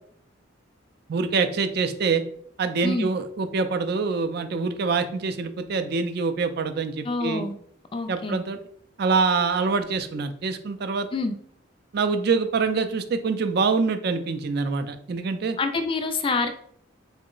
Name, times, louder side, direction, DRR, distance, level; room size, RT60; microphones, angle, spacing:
voice 1, 1.1-2.2 2.6-7.4 8.1-8.6 9.0-11.1 11.9-15.6, right 4 dB, 55° right, 8 dB, 0.4 m, -25 dB
voice 2, 7.0-7.5 7.9-8.4 11.1-11.3 15.6-16.5, left 3 dB, 25° left, 7 dB, 0.3 m, -26 dB
3.7 x 2.1 x 3.7 m, 0.64 s
head